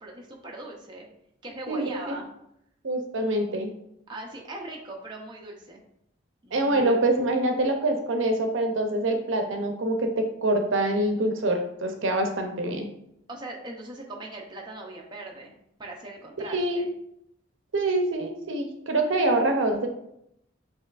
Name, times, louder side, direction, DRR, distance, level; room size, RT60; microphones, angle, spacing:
voice 1, 0.0-1.1 1.4-2.3 4.1-5.8 6.4-7.0 13.3-16.9, right 2 dB, 25° right, -1 dB, 0.6 m, -40 dB
voice 2, 1.7-2.2 2.8-3.7 6.5-12.9 16.5-16.8 17.7-19.9, right 1 dB, 80° right, 5 dB, 0.6 m, -25 dB
6.7 x 2.9 x 2.4 m, 0.77 s
head